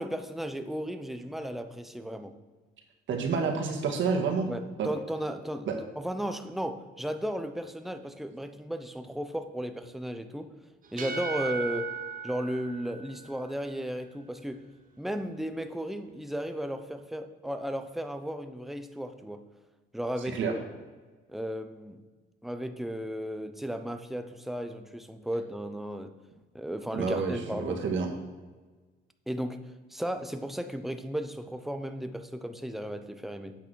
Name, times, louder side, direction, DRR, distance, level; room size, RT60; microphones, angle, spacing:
voice 1, 0.0-2.3 4.5-5.7 6.0-10.5 10.9-11.9 12.2-14.6 15.0-19.4 19.9-20.6 21.3-22.0 22.4-26.1 26.5-27.8 29.3-29.6 29.9-33.5, equal, ahead, 7 dB, 0.8 m, -35 dB
voice 2, 3.1-4.5 4.8-4.9 5.7-5.8 20.3-20.5 26.9-28.1, right 5 dB, 65° right, 3 dB, 1.9 m, -29 dB
sound 1, 10.8-13.6, right 5 dB, 40° right, 0.9 m, -37 dB
8.5 x 5.9 x 6.2 m, 1.3 s
cardioid pair, 95°, 21 cm